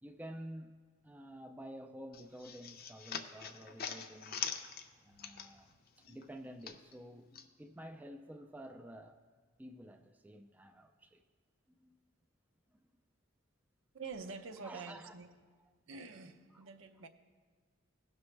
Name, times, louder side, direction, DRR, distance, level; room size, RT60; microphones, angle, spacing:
voice 1, 0.0-0.8 1.0-4.5 5.0-7.3 7.6-9.2 9.6-11.2 11.8-11.9 14.6-15.1 16.5-16.6, equal, 10° right, 5 dB, 0.4 m, -50 dB
sound 1, 2.1-5.8 6.1-7.5, left 7 dB, 50° left, 0.5 m, -43 dB
voice 2, 13.9-15.3 15.9-17.1, right 4 dB, 80° right, 7 dB, 0.6 m, -47 dB
16.5 x 6.1 x 3.2 m, 1.5 s
head